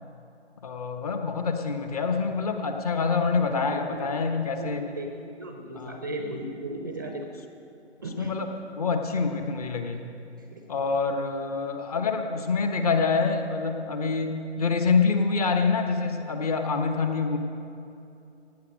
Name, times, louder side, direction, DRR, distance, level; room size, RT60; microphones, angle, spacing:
voice 1, 0.6-4.9 5.7-6.0 8.2-8.5 8.8-10.1 10.7-17.4, left 4 dB, 35° left, 5 dB, 1.1 m, -26 dB
voice 2, 3.4-4.1 4.6-5.1 5.4-7.3 8.0-8.3 10.4-10.7, right 1 dB, 20° right, 4 dB, 0.6 m, -36 dB
17.0 x 8.8 x 6.3 m, 2.8 s
figure-of-eight pair, 140°, 35 cm